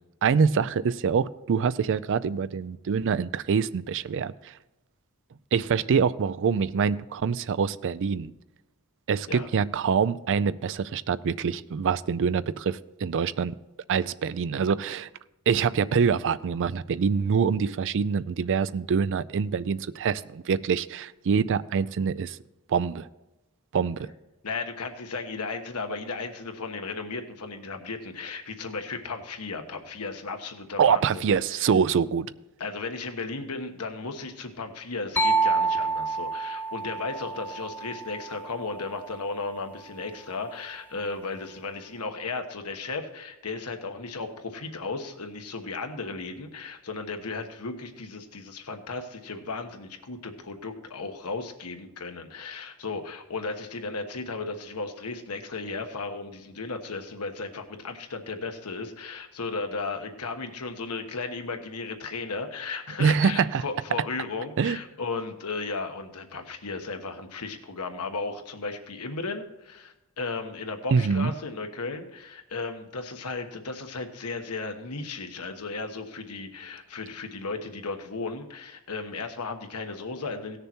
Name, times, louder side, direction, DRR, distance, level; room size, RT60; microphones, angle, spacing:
voice 1, 0.2-4.3 5.5-8.3 9.1-13.5 13.9-15.1 15.5-22.4 22.7-23.1 23.7-24.0 30.8-32.3 63.0-63.6 64.6-64.8 70.9-71.3, right 6 dB, 55° right, 16 dB, 0.4 m, -25 dB
voice 2, 24.4-31.7 32.6-80.6, left 3 dB, 90° left, 6 dB, 1.2 m, -35 dB
sound 1, 35.2-38.8, right 4 dB, 10° left, 0.5 m, -28 dB
17.0 x 6.8 x 4.4 m, 0.99 s
head